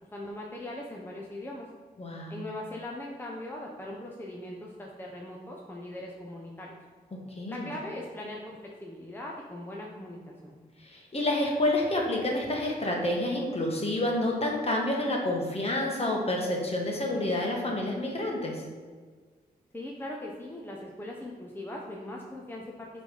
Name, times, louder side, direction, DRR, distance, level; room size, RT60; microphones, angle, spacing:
voice 1, 0.1-1.7 2.3-6.7 7.5-10.5 19.7-22.9, left 1 dB, 15° left, -2 dB, 0.8 m, -40 dB
voice 2, 2.0-2.4 7.3-7.7 10.8-18.6, left 1 dB, 40° left, -1 dB, 1.5 m, -29 dB
6.0 x 3.4 x 5.4 m, 1.5 s
cardioid pair, 65°, 16 cm